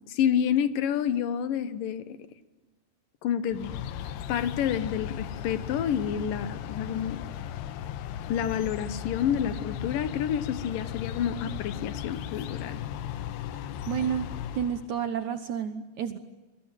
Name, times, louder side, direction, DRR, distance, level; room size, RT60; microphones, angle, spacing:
voice 1, 0.1-2.1 3.2-3.7 4.3-7.3 8.3-12.8, left 9 dB, 65° left, 13 dB, 2.7 m, -29 dB
sound 1, 3.5-14.9, left 10 dB, 80° left, 3.1 m, -36 dB
voice 2, 13.9-14.3 14.5-16.2, right 8 dB, 65° right, 10 dB, 2.0 m, -30 dB
29.5 x 22.0 x 9.2 m, 1.2 s
omnidirectional pair, 4.6 m